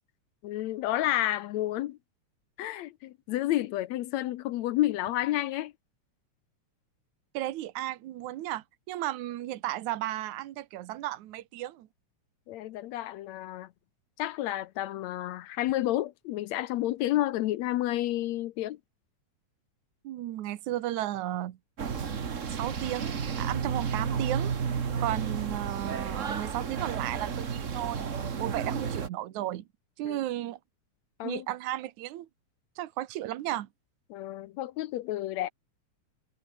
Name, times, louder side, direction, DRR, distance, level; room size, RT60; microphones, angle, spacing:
voice 1, 0.4-2.0 2.6-5.7 12.5-13.7 14.2-18.8 30.0-30.2 31.2-31.5 34.1-35.5, left 14 dB, 75° left, 1.9 m, -30 dB
voice 2, 7.3-11.9 20.0-21.6 22.5-24.5 25.0-28.1 28.4-29.6 30.0-30.6 31.2-32.3 32.8-33.7, right 14 dB, 80° right, 2.5 m, -34 dB
sound 1, 21.8-29.1, right 6 dB, 45° right, 1.0 m, -32 dB
omnidirectional pair, 3.4 m